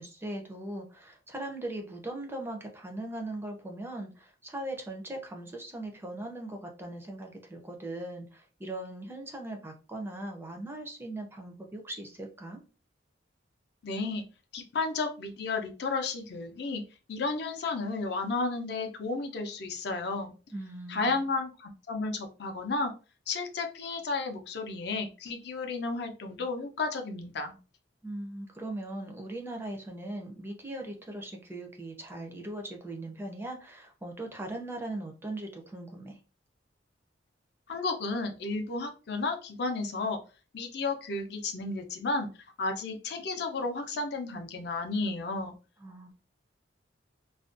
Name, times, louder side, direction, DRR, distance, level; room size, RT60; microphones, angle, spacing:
voice 1, 0.0-12.6 20.5-21.2 28.0-36.2 45.8-46.1, right 1 dB, 10° right, 2 dB, 0.4 m, -39 dB
voice 2, 13.8-14.2 14.5-16.8 17.1-20.3 20.9-22.9 23.3-27.6 37.7-40.2 40.5-42.3 42.6-45.5, left 3 dB, 60° left, 4 dB, 0.5 m, -32 dB
2.4 x 2.1 x 2.4 m, 0.34 s
head